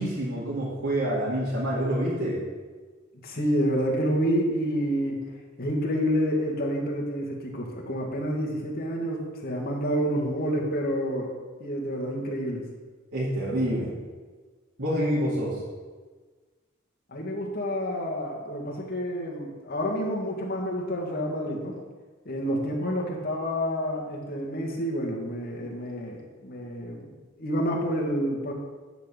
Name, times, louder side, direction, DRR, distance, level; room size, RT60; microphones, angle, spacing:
voice 1, 0.0-2.4 13.1-13.9 14.8-15.6, right 1 dB, 70° right, -9 dB, 2.3 m, -27 dB
voice 2, 3.1-5.3 5.6-11.3 11.6-12.6 17.1-21.8 22.3-27.1 27.4-28.5, equal, 50° left, -2 dB, 1.9 m, -28 dB
10.5 x 4.1 x 7.5 m, 1.4 s
head